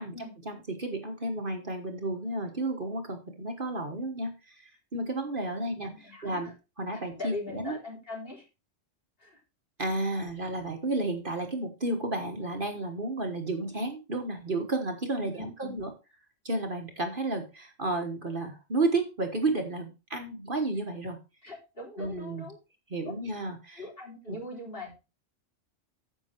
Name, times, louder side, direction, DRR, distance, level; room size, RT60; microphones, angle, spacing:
voice 1, 0.4-6.5 6.8-7.7 9.8-15.9 16.4-21.2 22.0-22.5 22.9-23.8 24.3-24.4, right 2 dB, 45° right, 4 dB, 1.5 m, -32 dB
voice 2, 5.8-6.5 6.9-8.4 9.2-9.4 15.1-15.7 21.4-22.6 23.0-23.2 23.8-25.0, left 2 dB, 45° left, -1 dB, 4.0 m, -41 dB
9.9 x 7.2 x 4.4 m, 0.28 s
omnidirectional pair, 1.3 m